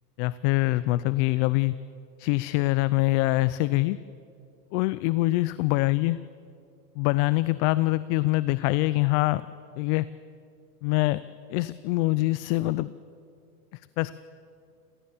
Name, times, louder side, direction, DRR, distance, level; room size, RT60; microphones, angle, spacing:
voice 1, 0.2-1.8 2.2-4.0 4.7-6.2 7.0-9.4 9.8-10.1 10.8-11.2 11.5-12.9 14.0-14.1, left 20 dB, 45° left, 17 dB, 0.6 m, -24 dB
29.5 x 17.5 x 7.2 m, 2.5 s
supercardioid pair, 125°, 50 cm